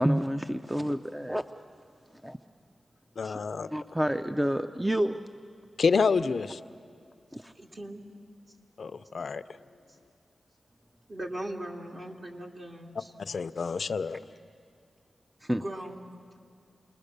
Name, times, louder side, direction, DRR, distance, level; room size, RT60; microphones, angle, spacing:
voice 1, 0.0-1.4 2.2-2.4 3.2-3.4 3.7-5.2 7.3-7.5 15.4-15.6, equal, 10° right, 9 dB, 0.5 m, -28 dB
voice 2, 3.2-3.7 5.8-6.6 8.8-9.4 13.2-14.2, left 5 dB, 75° left, 12 dB, 0.5 m, -28 dB
voice 3, 7.6-8.0 11.1-13.1 15.5-16.1, right 1 dB, 50° right, 1 dB, 2.6 m, -39 dB
29.0 x 20.5 x 6.7 m, 2.3 s
cardioid pair, 65°, 0 cm